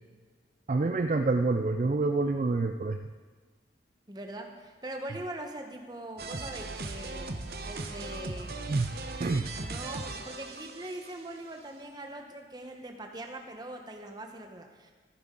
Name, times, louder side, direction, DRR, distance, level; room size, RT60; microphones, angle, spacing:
voice 1, 0.7-3.0 8.7-8.9 9.2-9.5, right 3 dB, 40° right, 6 dB, 0.4 m, -27 dB
voice 2, 4.1-7.3 7.6-8.5 9.6-14.9, right 1 dB, 25° right, 3 dB, 1.1 m, -42 dB
sound 1, 6.2-11.3, right 2 dB, 55° right, 0.9 m, -38 dB
14.5 x 9.6 x 3.8 m, 1.5 s
head